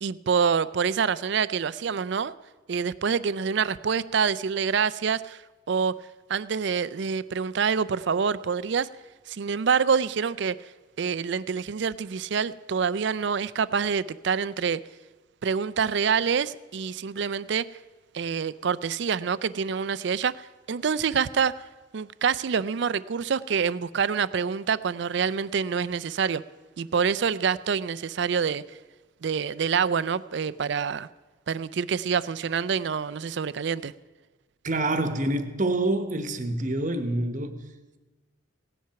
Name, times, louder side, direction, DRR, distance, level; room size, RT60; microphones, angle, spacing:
voice 1, 0.0-2.3 2.7-5.4 5.7-5.9 6.3-8.9 9.3-10.6 11.0-14.8 15.4-17.6 18.1-21.6 21.9-26.4 26.8-28.6 29.2-31.1 31.5-33.9, right 6 dB, 60° right, 0.4 m, -26 dB
voice 2, 34.6-37.7, right 2 dB, 40° right, 1.0 m, -27 dB
17.0 x 10.5 x 5.8 m
head